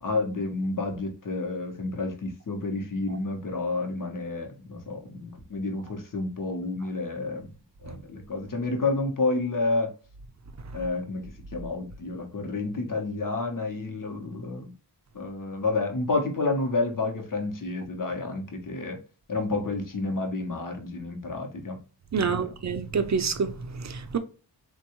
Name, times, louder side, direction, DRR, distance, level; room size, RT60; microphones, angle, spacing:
voice 1, 0.0-7.5 7.8-9.9 10.7-11.2 11.5-14.7 15.1-19.0 19.3-21.8 22.2-22.4, left 3 dB, 50° left, 0.8 m, -30 dB
voice 2, 22.1-24.2, right 5 dB, 40° right, 0.5 m, -28 dB
3.5 x 2.2 x 2.8 m
wide cardioid pair, 75°, 42 cm